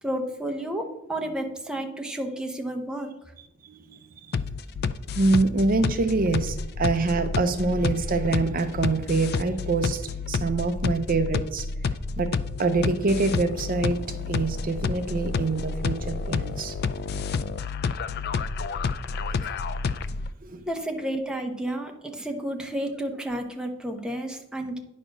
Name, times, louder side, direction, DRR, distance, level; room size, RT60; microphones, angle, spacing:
voice 1, 0.0-3.1 20.7-24.8, right 1 dB, 5° right, 0.9 m, -31 dB
voice 2, 3.6-4.3 5.1-11.9 12.2-16.8 19.4-19.5 20.4-20.6, right 3 dB, 45° right, 0.6 m, -25 dB
sound 1, 4.3-20.3, left 4 dB, 50° left, 0.4 m, -29 dB
10.0 x 4.3 x 6.1 m
head